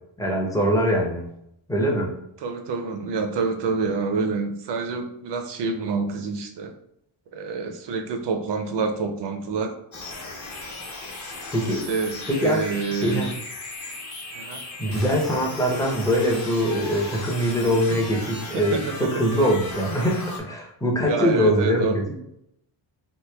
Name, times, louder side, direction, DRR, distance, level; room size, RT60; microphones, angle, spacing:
voice 1, 0.2-1.3 1.7-2.1 11.5-11.8 12.3-12.6 13.0-13.3 14.8-22.0, equal, 10° left, -1 dB, 0.6 m, -23 dB
voice 2, 2.4-6.7 7.3-9.7 11.8-13.3 14.4-14.6 17.9-19.2 21.0-22.0, right 4 dB, 60° right, 6 dB, 0.6 m, -28 dB
sound 1, 9.9-20.4, left 2 dB, 40° left, 0.9 m, -36 dB
3.1 x 2.6 x 3.3 m, 0.77 s
cardioid pair, 150°, 47 cm